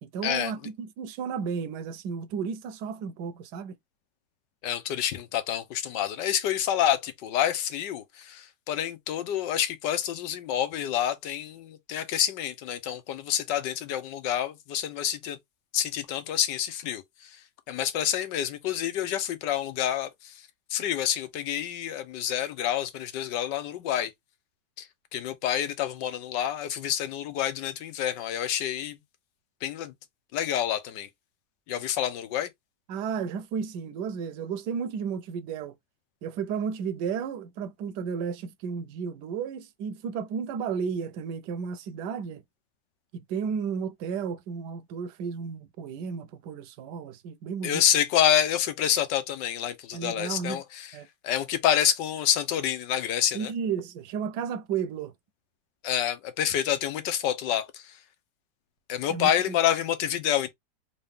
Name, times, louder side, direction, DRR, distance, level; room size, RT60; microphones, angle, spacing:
voice 1, 0.0-3.7 32.9-35.7 36.2-42.4 43.1-47.8 49.9-50.6 50.9-51.1 53.3-55.1 59.1-59.6, right 6 dB, 75° right, 1.2 m, -33 dB
voice 2, 4.6-15.4 15.7-17.4 17.7-24.1 24.8-29.0 29.6-29.9 30.3-31.1 31.7-32.5 47.6-50.9 51.2-53.5 55.8-58.0 58.9-60.5, left 10 dB, 80° left, 1.4 m, -28 dB
3.8 x 2.7 x 3.5 m
omnidirectional pair, 1.9 m